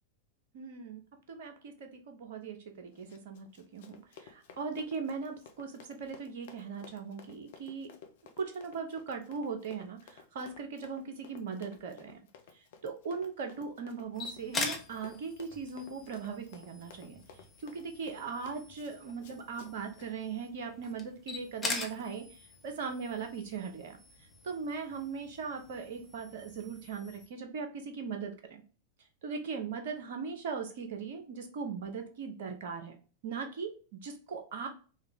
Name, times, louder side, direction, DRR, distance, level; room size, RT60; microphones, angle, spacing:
voice 1, 0.5-1.0 1.3-3.5 3.7-7.9 8.4-12.2 12.5-17.2 17.6-24.0 24.4-28.6 29.2-32.9 33.2-34.7, right 5 dB, 55° right, 5 dB, 0.7 m, -39 dB
Run, 2.9-20.1, left 6 dB, 55° left, 0.6 m, -55 dB
sound 1, 14.1-27.3, left 3 dB, 15° left, 0.8 m, -43 dB
3.7 x 2.2 x 3.5 m, 0.37 s
figure-of-eight pair, 90°, 0 cm